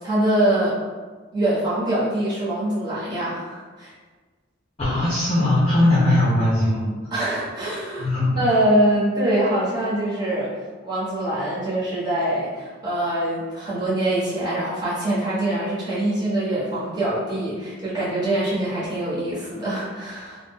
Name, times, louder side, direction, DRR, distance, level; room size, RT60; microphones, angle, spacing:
voice 1, 0.0-0.8 1.3-3.9 7.1-8.1 8.4-10.5 10.8-20.4, right 1 dB, 20° right, -10 dB, 0.9 m, -24 dB
voice 2, 4.8-6.9 8.0-8.4, left 1 dB, 30° left, -8 dB, 0.6 m, -19 dB
2.5 x 2.0 x 3.5 m, 1.4 s
head